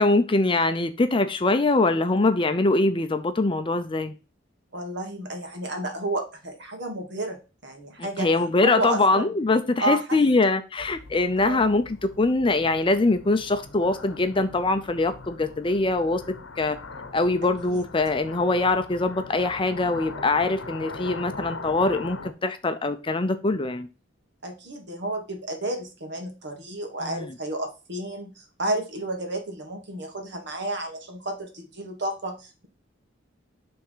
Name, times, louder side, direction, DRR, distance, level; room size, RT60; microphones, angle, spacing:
voice 1, 0.0-4.1 8.0-16.2 16.6-16.8 17.1-23.9 27.0-27.4, left 2 dB, 25° left, 0.5 m, -23 dB
voice 2, 4.7-8.3 8.6-9.3 9.8-10.0 10.4-10.5 11.4-11.6 17.7-17.8 24.4-32.7, right 2 dB, 60° right, 1.7 m, -31 dB
sound 1, 10.8-22.3, left 3 dB, 85° left, 0.9 m, -41 dB
5.8 x 3.5 x 5.6 m
head